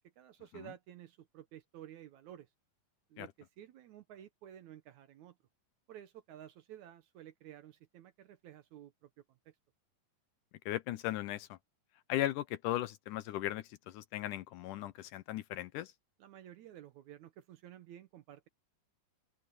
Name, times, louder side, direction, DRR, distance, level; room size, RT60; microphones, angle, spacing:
voice 1, 0.2-2.5 3.1-5.4 5.9-9.6 16.2-18.5, right 11 dB, 70° right, 2.0 m, -53 dB
voice 2, 10.7-11.6 12.1-15.9, left 14 dB, 75° left, 2.1 m, -37 dB
open air
omnidirectional pair, 4.0 m